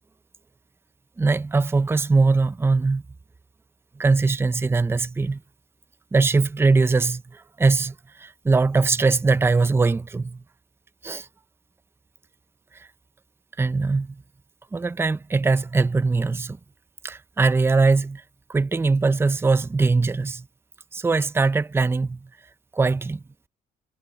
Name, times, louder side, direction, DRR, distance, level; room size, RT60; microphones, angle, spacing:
voice 1, 1.2-3.0 4.0-5.4 6.1-10.4 11.0-11.3 12.7-12.9 13.6-14.2 14.7-16.6 17.0-18.2 18.5-20.5 20.9-22.3 22.7-23.2, right 3 dB, 15° right, 0.6 m, -21 dB
cardioid pair, 110°, 17 cm